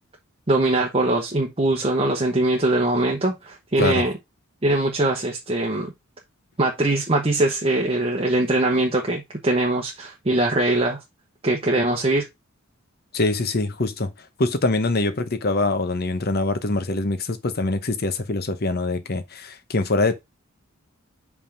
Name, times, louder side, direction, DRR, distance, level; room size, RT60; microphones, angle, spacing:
voice 1, 0.5-4.1 4.6-5.9 6.6-11.0 11.4-12.3, right 2 dB, 25° right, 1.0 m, -22 dB
voice 2, 13.1-14.1 14.4-20.2, left 2 dB, 50° left, 0.9 m, -24 dB
5.5 x 3.6 x 5.5 m
head